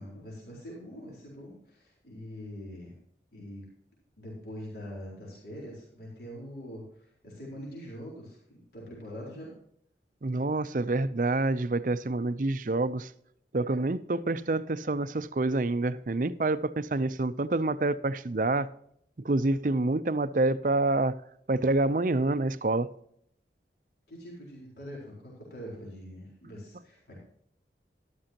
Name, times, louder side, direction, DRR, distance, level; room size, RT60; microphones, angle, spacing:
voice 1, 0.0-2.9 3.3-3.6 4.2-9.5 24.1-27.2, equal, 65° left, 4.1 m, -43 dB
voice 2, 10.2-13.1 13.5-18.7 19.2-21.1 21.5-22.9, right 2 dB, 50° right, 0.5 m, -27 dB
13.0 x 12.0 x 2.9 m
head